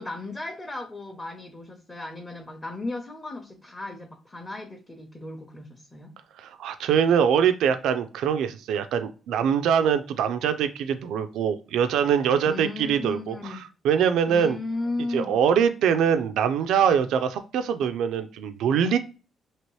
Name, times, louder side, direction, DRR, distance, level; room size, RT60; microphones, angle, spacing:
voice 1, 0.0-6.1 12.4-13.6 14.3-15.4, left 2 dB, 20° left, 0 dB, 0.7 m, -35 dB
voice 2, 6.4-13.6 13.8-14.6 15.1-19.0, right 8 dB, 85° right, 9 dB, 0.3 m, -23 dB
2.9 x 2.8 x 3.1 m, 0.35 s
cardioid pair, 90°, 0 cm